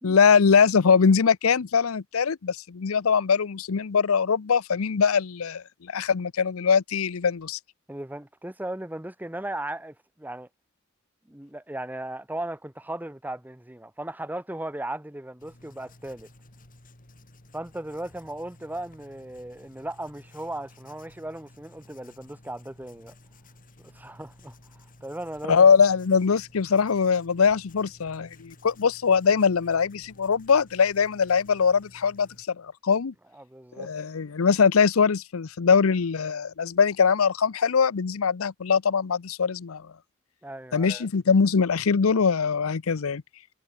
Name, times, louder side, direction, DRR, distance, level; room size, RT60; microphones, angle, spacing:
voice 1, 0.0-7.6 25.5-33.1 33.8-39.8 40.7-43.2, left 6 dB, 90° left, 0.6 m, -22 dB
voice 2, 7.9-10.5 11.3-16.3 17.5-23.1 23.8-24.6 25.0-25.6 33.3-33.9 40.4-41.1, right 1 dB, 10° right, 1.1 m, -37 dB
Writing, 15.4-32.4, left 1 dB, 40° left, 3.2 m, -54 dB
head